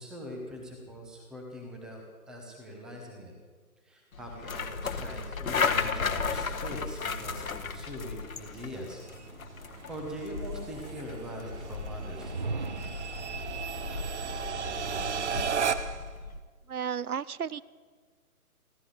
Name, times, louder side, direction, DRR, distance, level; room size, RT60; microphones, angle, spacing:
voice 1, 0.0-2.0 2.3-3.3 3.8-9.0 9.9-12.3, equal, ahead, 1 dB, 0.8 m, -42 dB
sound 1, 4.1-16.4, left 5 dB, 65° left, 1.4 m, -35 dB
sound 2, 6.1-16.1, right 7 dB, 50° right, 0.9 m, -37 dB
sound 3, 12.0-13.2, right 4 dB, 35° right, 0.5 m, -36 dB
voice 2, 16.7-17.6, right 7 dB, 75° right, 20 dB, 0.7 m, -33 dB
29.0 x 12.5 x 4.0 m, 1.5 s
figure-of-eight pair, 145°, 45 cm